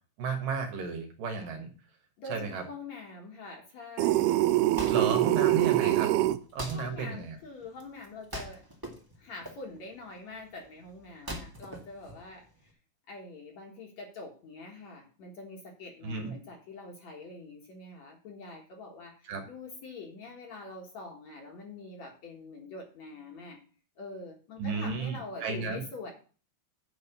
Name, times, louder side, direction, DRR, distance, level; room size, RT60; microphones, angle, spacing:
voice 1, 0.2-1.7 2.3-2.6 4.9-6.1 6.5-7.4 16.0-16.3 19.3-19.4 24.6-25.8, right 5 dB, 65° right, 4 dB, 2.9 m, -33 dB
voice 2, 2.2-4.5 5.1-5.6 6.7-8.7 9.2-12.7 13.1-23.6 24.0-26.1, left 3 dB, 55° left, 1 dB, 2.4 m, -45 dB
sound 1, 4.0-6.4, right 16 dB, 90° right, 2.6 m, -24 dB
Wood, 4.3-12.7, equal, 15° right, 0.7 m, -44 dB
8.9 x 5.4 x 6.8 m, 0.38 s
omnidirectional pair, 4.5 m